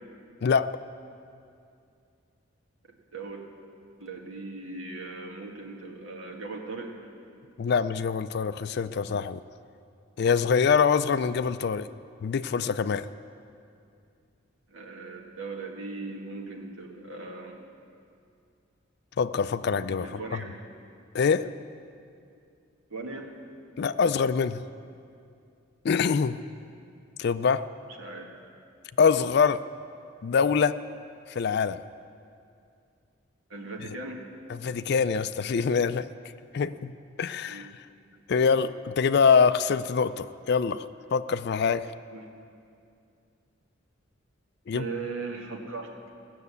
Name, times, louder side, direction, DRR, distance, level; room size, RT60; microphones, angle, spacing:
voice 1, 0.4-0.7 7.6-9.4 10.2-11.9 12.2-13.1 19.2-20.4 21.1-21.5 23.8-24.6 25.8-26.4 27.2-27.7 29.0-29.6 30.2-30.8 31.3-31.8 34.5-36.1 36.5-36.9 37.2-37.7 38.3-41.9 44.7-44.9, left 6 dB, 55° left, 14 dB, 0.4 m, -24 dB
voice 2, 3.1-3.4 4.0-6.9 14.7-17.6 20.0-20.6 22.9-23.3 28.0-28.3 33.5-34.3 37.5-37.7 42.1-42.3 44.7-45.9, right 3 dB, 80° right, 1 dB, 1.8 m, -38 dB
17.5 x 6.7 x 8.2 m, 2.4 s
head